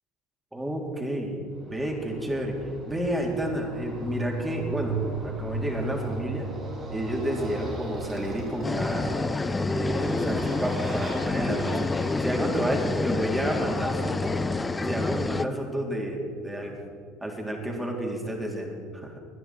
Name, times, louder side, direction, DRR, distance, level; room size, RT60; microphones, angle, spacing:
voice 1, 0.5-1.4 1.6-2.6 2.9-5.0 5.2-6.5 6.9-9.1 9.5-11.8 12.2-14.4 14.8-16.8 17.2-19.1, right 1 dB, 10° right, 0 dB, 3.7 m, -30 dB
Motorcycle, 1.6-14.3, right 2 dB, 35° right, 5.4 m, -37 dB
sound 1, 8.6-15.4, left 3 dB, 15° left, 0.6 m, -28 dB
26.5 x 10.5 x 4.5 m, 2.2 s
hypercardioid pair, 70°, 0 cm